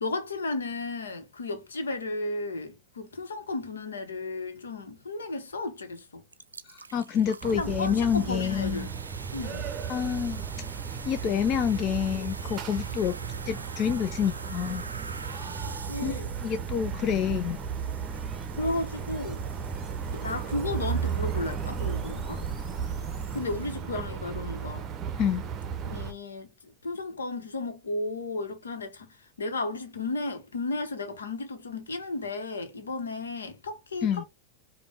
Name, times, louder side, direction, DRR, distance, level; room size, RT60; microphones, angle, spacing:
voice 1, 0.0-6.2 7.5-8.9 9.3-9.7 15.8-16.3 18.6-19.4 20.1-22.4 23.3-24.9 25.8-26.5 26.8-34.3, left 2 dB, 70° left, 0.9 m, -34 dB
sound 1, 5.9-6.0 6.3-24.1, right 4 dB, 80° right, 0.3 m, -46 dB
voice 2, 6.6-8.9 9.9-10.4 11.1-13.2 13.5-14.8 16.0-16.1 16.4-17.6 25.2-25.4 34.0-34.2, left 8 dB, 35° left, 0.4 m, -28 dB
sound 2, 7.4-26.1, right 7 dB, 30° right, 0.6 m, -35 dB
sound 3, 14.6-23.7, left 3 dB, ahead, 0.9 m, -47 dB
5.1 x 2.2 x 3.4 m
figure-of-eight pair, 90°, 0 cm